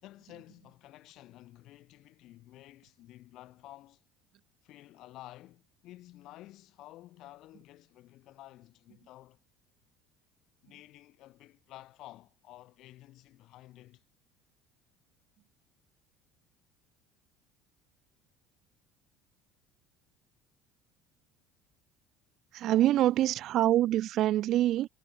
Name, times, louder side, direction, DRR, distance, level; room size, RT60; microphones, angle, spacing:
voice 1, 0.0-4.0 4.6-9.4 10.6-14.0, left 15 dB, 65° left, 3.5 m, -52 dB
voice 2, 22.5-24.9, right 13 dB, 60° right, 0.7 m, -25 dB
supercardioid pair, 85°, 0 cm